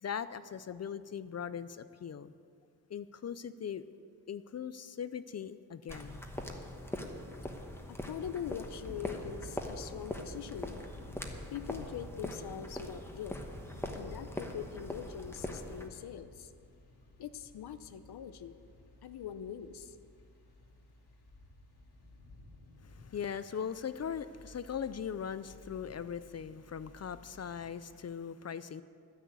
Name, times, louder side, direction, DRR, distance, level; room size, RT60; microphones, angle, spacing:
voice 1, 0.0-2.3 2.9-3.8 4.3-6.2 22.8-28.8, left 7 dB, 45° left, 14 dB, 0.4 m, -40 dB
sound 1, 5.9-15.9, left 1 dB, 5° left, 1.1 m, -42 dB
voice 2, 7.9-10.8 11.5-13.4 13.9-16.5 17.2-18.6 19.0-20.0, left 9 dB, 90° left, 11 dB, 0.7 m, -43 dB
Thunder / Rain, 8.8-27.9, left 2 dB, 75° left, 2.5 m, -53 dB
12.0 x 10.0 x 8.1 m, 2.3 s
wide cardioid pair, 140°, 38 cm